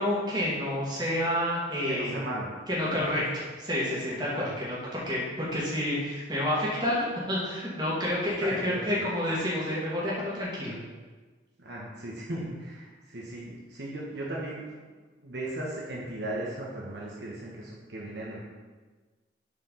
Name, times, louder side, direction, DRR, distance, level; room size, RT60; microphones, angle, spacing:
voice 1, 0.0-2.2 2.7-3.2 3.7-10.7, left 1 dB, 20° right, -7 dB, 2.3 m, -29 dB
voice 2, 1.9-2.5 3.0-3.1 8.4-9.0 11.6-14.6 15.2-18.4, right 1 dB, 60° right, -4 dB, 1.3 m, -36 dB
6.9 x 4.8 x 5.6 m, 1.3 s
head